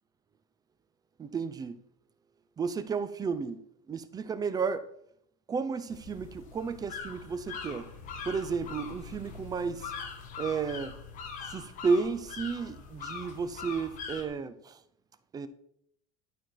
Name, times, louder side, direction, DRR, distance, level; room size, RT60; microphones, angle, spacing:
voice 1, 1.2-1.8 2.6-3.6 3.9-4.9 5.5-7.9 8.3-9.9 10.4-10.9 11.4-14.8 15.3-15.5, right 5 dB, 20° right, 0.6 m, -32 dB
sound 1, 5.9-14.3, left 5 dB, 45° left, 1.6 m, -42 dB
11.5 x 4.4 x 4.6 m
cardioid pair, 150°, 19 cm